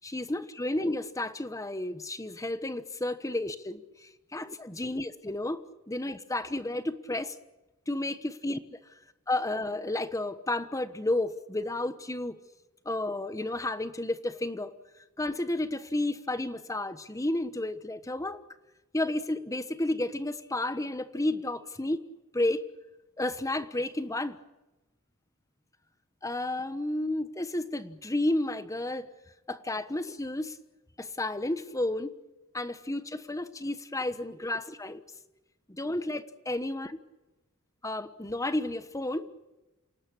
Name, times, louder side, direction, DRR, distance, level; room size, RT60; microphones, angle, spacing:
voice 1, 0.0-5.6 5.9-7.3 7.9-8.6 9.3-12.4 12.8-14.7 15.2-18.4 18.9-22.0 22.3-22.7 23.2-24.4 26.2-29.1 29.5-30.6 31.0-32.1 32.5-35.0 35.7-37.0 37.8-39.3, left 1 dB, 15° left, 12 dB, 1.2 m, -32 dB
28.0 x 18.5 x 8.6 m, 1.0 s
head